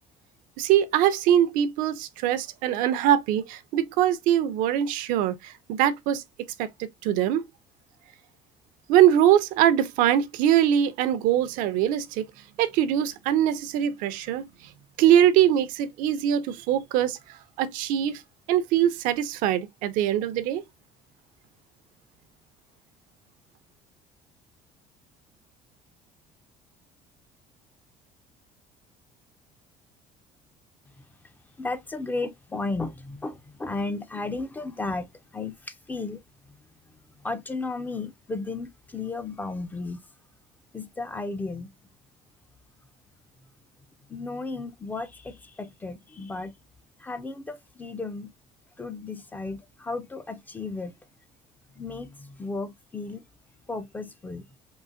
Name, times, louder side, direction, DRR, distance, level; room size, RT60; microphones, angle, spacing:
voice 1, 0.6-6.2 6.6-7.4 8.9-12.3 12.6-14.5 15.0-17.2 17.6-18.2 18.5-20.6, right 11 dB, 75° right, 0.5 m, -22 dB
voice 2, 31.6-35.1 35.3-36.2 37.2-40.0 40.7-41.7 44.1-46.5 47.0-48.3 48.8-50.9 51.8-53.2 53.7-54.5, left 3 dB, 10° left, 0.3 m, -34 dB
3.8 x 2.5 x 2.4 m
cardioid pair, 160°, 14 cm